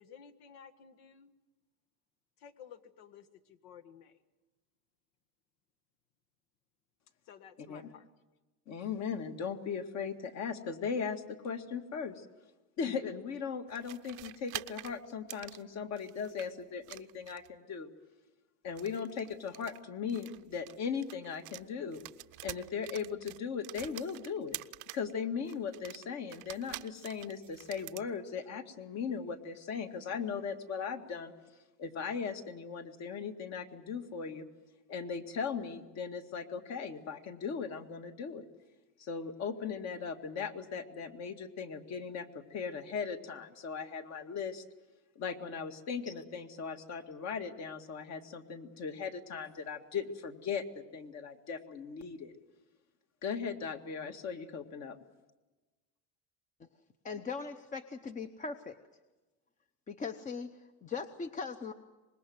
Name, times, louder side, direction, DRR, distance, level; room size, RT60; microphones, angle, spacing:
voice 1, 0.0-1.3 2.4-4.1 7.3-8.1, left 8 dB, 75° left, 9 dB, 1.9 m, -54 dB
voice 2, 8.7-12.3 12.8-17.9 18.6-22.0 22.4-24.6 24.9-31.3 31.8-34.5 34.9-38.5 39.0-44.6 45.2-52.3 53.2-55.0, left 6 dB, 45° left, 6 dB, 2.1 m, -38 dB
sound 1, 13.7-16.5 16.8-17.6 18.7-21.7 21.9-25.1 25.5-28.1, right 21 dB, 55° right, 0.7 m, -47 dB
voice 3, 57.0-58.8 59.9-61.7, left 5 dB, 20° left, 9 dB, 0.8 m, -40 dB
25.0 x 21.0 x 7.9 m, 1.2 s
cardioid pair, 140°, 37 cm